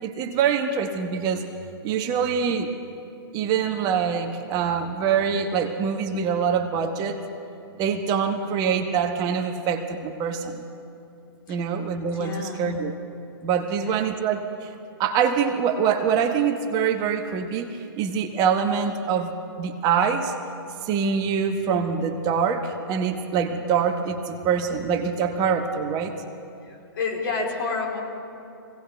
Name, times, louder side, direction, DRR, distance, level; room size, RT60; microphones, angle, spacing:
voice 1, 0.0-1.4 1.8-2.7 3.3-7.2 7.8-10.6 11.5-13.0 13.4-14.7 15.0-20.3 20.8-26.1, right 7 dB, 30° right, 5 dB, 1.0 m, -24 dB
voice 2, 12.2-12.7 26.7-28.0, left 4 dB, 60° left, -1 dB, 3.7 m, -29 dB
24.5 x 17.5 x 3.4 m, 2.7 s
hypercardioid pair, 125°, 13 cm